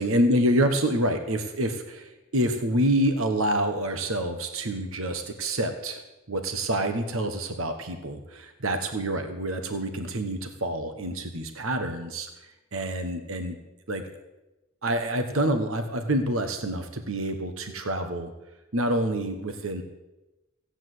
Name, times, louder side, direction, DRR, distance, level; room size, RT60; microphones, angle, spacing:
voice 1, 0.0-6.0 6.3-13.6 13.9-14.0 14.8-18.3 18.7-19.8, right 1 dB, 75° right, 7 dB, 1.3 m, -27 dB
16.0 x 8.9 x 7.8 m, 1.0 s
head